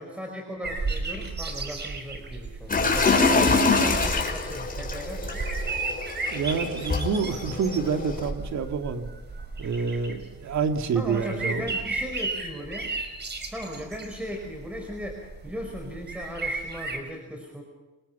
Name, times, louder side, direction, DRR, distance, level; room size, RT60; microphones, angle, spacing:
voice 1, 0.0-5.5 10.9-12.9 13.5-17.6, equal, 5° right, 1 dB, 5.2 m, -37 dB
sound 1, 0.6-17.0, right 3 dB, 35° right, 5.2 m, -34 dB
sound 2, 2.7-8.3, left 4 dB, 30° left, 5.6 m, -25 dB
voice 2, 3.2-3.5 6.3-9.1 9.6-11.8, right 5 dB, 65° right, 5 dB, 2.7 m, -28 dB
27.5 x 21.5 x 5.7 m, 1.1 s
cardioid pair, 90°, 30 cm